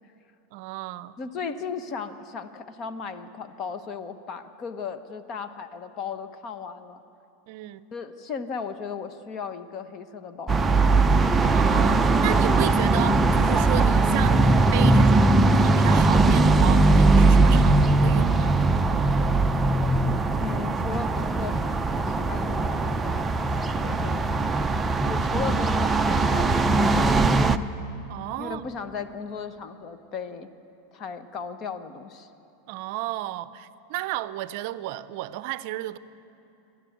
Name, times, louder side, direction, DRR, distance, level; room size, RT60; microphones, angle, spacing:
voice 1, 0.5-1.1 7.5-7.9 11.2-18.6 28.1-28.6 32.7-36.0, right 15 dB, 60° right, 0.6 m, -33 dB
voice 2, 1.2-7.0 7.9-10.6 20.4-23.2 23.8-24.2 25.0-27.5 28.4-30.5 30.9-32.3, left 5 dB, 35° left, 1.1 m, -36 dB
sound 1, 10.5-27.6, right 2 dB, 10° right, 0.6 m, -20 dB
28.0 x 11.5 x 9.4 m
supercardioid pair, 145°, 0 cm